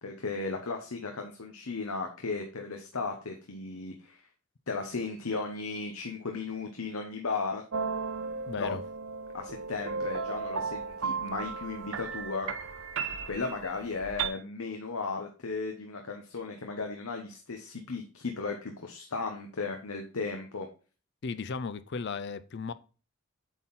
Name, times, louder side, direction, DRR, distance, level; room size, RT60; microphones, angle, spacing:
voice 1, 0.0-4.2 4.7-7.6 8.6-8.8 9.3-12.5 13.2-20.7, left 4 dB, 75° left, 1.0 m, -35 dB
sound 1, 7.7-14.3, right 5 dB, 60° right, 0.6 m, -35 dB
voice 2, 8.5-8.8 21.2-22.7, left 5 dB, 50° left, 0.4 m, -35 dB
8.3 x 3.8 x 4.0 m
head